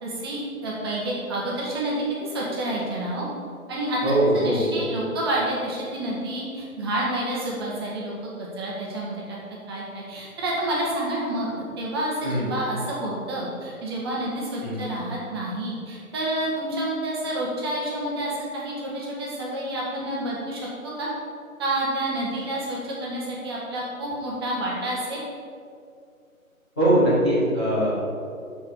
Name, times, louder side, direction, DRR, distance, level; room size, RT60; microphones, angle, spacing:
voice 1, 0.0-3.3 3.7-4.0 4.3-8.3 8.5-9.4 9.7-21.1 21.6-25.2, right 1 dB, 15° right, -5 dB, 1.4 m, -29 dB
voice 2, 4.0-4.8 12.2-12.5 14.6-14.8 26.8-28.1, right 1 dB, 5° left, -18 dB, 0.7 m, -21 dB
6.9 x 6.5 x 6.8 m, 2.4 s
figure-of-eight pair, 150°, 43 cm